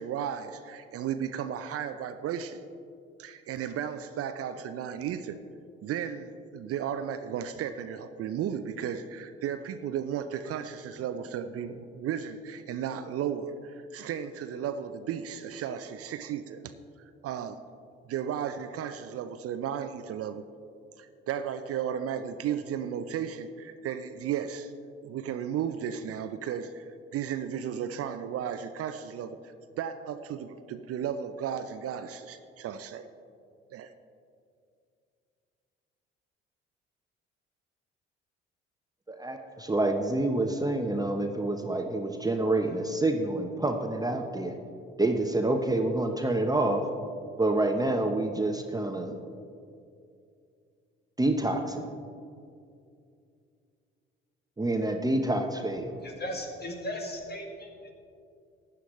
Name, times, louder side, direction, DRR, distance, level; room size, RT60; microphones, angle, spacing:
voice 1, 0.0-2.6 3.2-5.4 5.8-16.7 17.2-17.6 18.1-20.4 21.0-24.7 25.0-29.4 29.8-33.1 33.7-33.9, right 8 dB, 50° right, 10 dB, 0.6 m, -34 dB
voice 2, 39.1-44.5 45.0-46.8 47.4-49.2 51.2-51.9 54.6-55.9, right 2 dB, 10° right, 4 dB, 0.9 m, -27 dB
voice 3, 55.9-57.9, left 1 dB, 35° left, 2 dB, 2.1 m, -37 dB
15.5 x 9.9 x 3.2 m, 2.4 s
hypercardioid pair, 50°, 30 cm